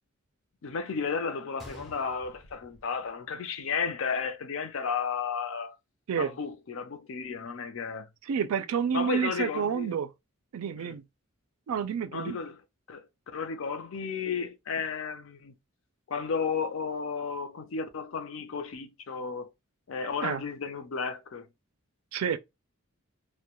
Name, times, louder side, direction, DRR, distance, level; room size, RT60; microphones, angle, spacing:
voice 1, 0.6-5.7 6.2-8.1 8.9-10.0 10.7-11.0 12.1-12.6 12.9-13.0 13.3-15.5 16.1-19.5 19.9-21.5, left 5 dB, 65° left, 0.5 m, -33 dB
Gunshot gunfire, 1.6-3.6 3.9-4.0 4.7-4.9, right 1 dB, ahead, 0.5 m, -50 dB
voice 2, 8.3-10.1 10.5-11.0 11.7-12.4 20.2-20.4 22.1-22.4, right 7 dB, 85° right, 0.4 m, -29 dB
2.2 x 2.1 x 2.9 m
head